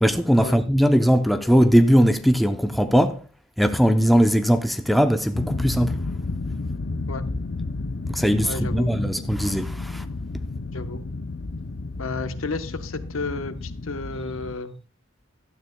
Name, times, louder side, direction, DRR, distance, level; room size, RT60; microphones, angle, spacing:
voice 1, 0.0-3.2 3.6-6.0 8.1-10.0, equal, ahead, 0.6 m, -19 dB
sound 1, 5.3-14.5, left 3 dB, 50° left, 0.6 m, -31 dB
voice 2, 8.4-8.9 10.7-11.0 12.0-14.7, left 3 dB, 75° left, 1.0 m, -32 dB
16.0 x 12.5 x 2.2 m
head